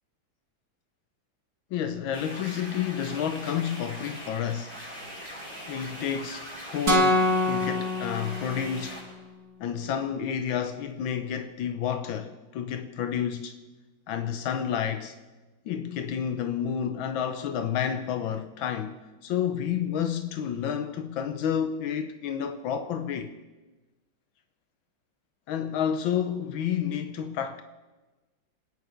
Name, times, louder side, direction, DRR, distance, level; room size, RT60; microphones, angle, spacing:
voice 1, 1.7-4.8 5.7-9.0 9.6-13.6 14.1-15.2 15.6-23.3 25.5-27.6, left 8 dB, 85° left, 1.6 m, -30 dB
sound 1, 2.1-9.0, equal, 45° left, 6.9 m, -41 dB
sound 2, 6.9-9.0, left 1 dB, 50° right, 2.8 m, -25 dB
26.0 x 10.0 x 5.1 m
omnidirectional pair, 2.1 m